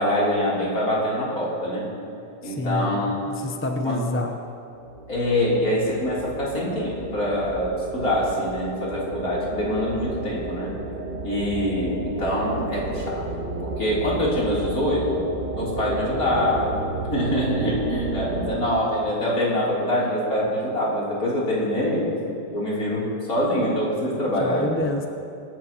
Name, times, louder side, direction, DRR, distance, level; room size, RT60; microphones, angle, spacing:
voice 1, 0.0-1.9 2.4-3.2 3.8-4.0 5.1-10.7 11.2-15.2 15.5-22.1 22.5-24.8, left 1 dB, 55° left, -7 dB, 4.0 m, -24 dB
voice 2, 2.4-4.3 24.4-25.1, left 2 dB, 15° left, 3 dB, 0.4 m, -28 dB
sound 1, 4.8-18.6, right 3 dB, 65° right, 0.4 m, -32 dB
23.5 x 11.0 x 3.0 m, 2.8 s
omnidirectional pair, 1.9 m